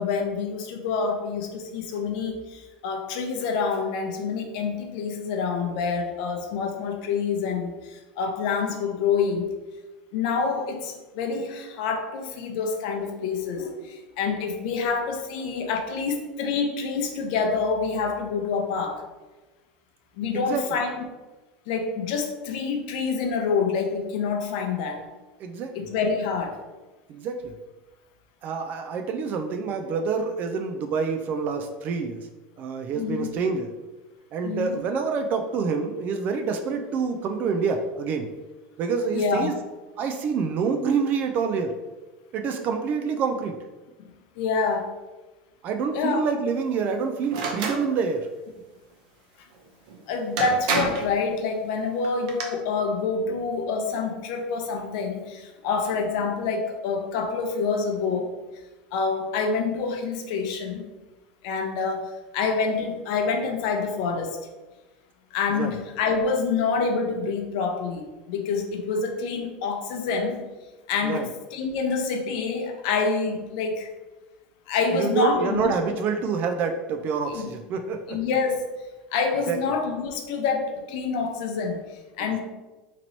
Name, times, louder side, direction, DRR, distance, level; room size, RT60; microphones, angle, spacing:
voice 1, 0.0-9.5 10.1-19.0 20.2-21.1 21.7-25.1 25.7-26.6 32.9-33.3 34.4-34.8 39.1-39.5 44.4-44.9 45.9-46.2 50.1-58.3 58.9-60.9 61.4-64.4 65.3-70.4 70.9-73.9 74.7-76.0 77.3-77.5 78.1-78.6 79.1-82.4, left 5 dB, 70° left, 3 dB, 0.7 m, -27 dB
voice 2, 25.4-25.8 27.1-27.5 28.4-32.2 32.6-33.7 34.3-38.3 38.8-39.6 40.0-41.7 42.3-43.6 45.6-48.3 65.5-65.7 71.0-71.3 74.9-78.2 79.5-79.6, right 5 dB, 45° right, 5 dB, 0.3 m, -27 dB
sound 1, 47.3-47.8 49.9-50.0 50.4-51.1 52.0-52.4, right 4 dB, 75° right, 0.7 m, -27 dB
2.9 x 2.9 x 4.0 m, 1.2 s
supercardioid pair, 125°, 4 cm